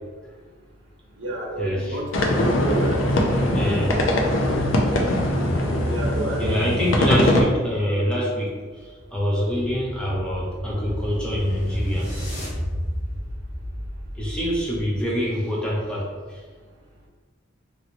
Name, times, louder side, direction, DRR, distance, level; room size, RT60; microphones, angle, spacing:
voice 1, 1.2-3.0 5.9-6.6, right 2 dB, 75° right, -1 dB, 0.7 m, -30 dB
sound 1, 2.1-7.4, left 1 dB, 80° left, 0.5 m, -21 dB
voice 2, 3.5-4.0 6.4-12.1 14.2-16.4, equal, 5° left, -5 dB, 0.6 m, -26 dB
sound 2, 9.0-15.1, equal, 55° left, 1.2 m, -32 dB
3.0 x 2.6 x 2.9 m, 1.4 s
head